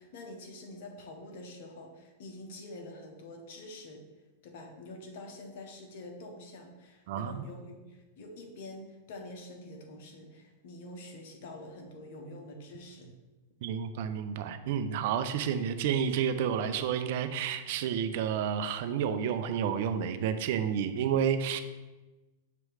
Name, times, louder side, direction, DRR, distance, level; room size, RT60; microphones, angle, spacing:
voice 1, 0.0-4.0 4.4-13.1, left 1 dB, 60° left, 2 dB, 1.3 m, -46 dB
voice 2, 7.1-7.4 13.6-21.6, right 8 dB, 60° right, 10 dB, 0.5 m, -30 dB
6.8 x 3.1 x 4.9 m, 1.1 s
hypercardioid pair, 120°, 0 cm